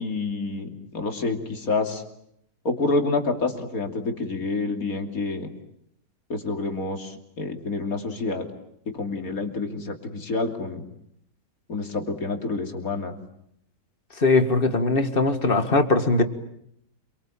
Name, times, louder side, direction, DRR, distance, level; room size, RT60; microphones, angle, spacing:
voice 1, 0.0-2.0 2.6-5.5 6.3-8.4 8.9-10.8 11.7-13.1, left 3 dB, 55° left, 4 dB, 3.3 m, -28 dB
voice 2, 14.2-16.2, left 3 dB, 30° left, 9 dB, 2.0 m, -20 dB
27.5 x 24.0 x 8.9 m, 0.74 s
omnidirectional pair, 1.8 m